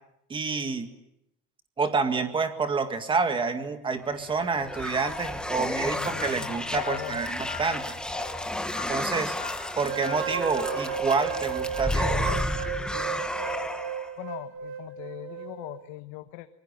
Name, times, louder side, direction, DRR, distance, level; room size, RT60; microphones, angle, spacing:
voice 1, 0.3-0.9 1.8-7.8 8.9-9.3 9.8-12.1, right 4 dB, 15° right, 8 dB, 2.0 m, -28 dB
sound 1, 4.1-14.1, left 1 dB, 5° left, 1.2 m, -32 dB
voice 2, 5.5-7.2 14.2-16.5, left 17 dB, 70° left, 9 dB, 1.3 m, -40 dB
sound 2, 6.2-11.0, left 7 dB, 25° left, 4.3 m, -43 dB
sound 3, 9.9-15.9, right 8 dB, 50° right, 3.2 m, -34 dB
25.0 x 22.5 x 9.1 m, 0.81 s
cardioid pair, 175°, 30 cm